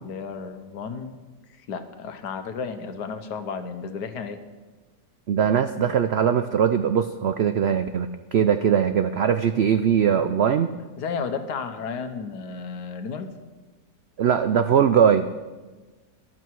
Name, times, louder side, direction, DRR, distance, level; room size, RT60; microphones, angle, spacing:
voice 1, 0.0-1.2 1.6-4.4 11.0-13.3, left 5 dB, 85° left, 8 dB, 1.6 m, -33 dB
voice 2, 5.3-10.7 14.2-15.3, right 8 dB, 85° right, 9 dB, 0.5 m, -21 dB
14.0 x 12.5 x 4.7 m, 1.3 s
omnidirectional pair, 1.7 m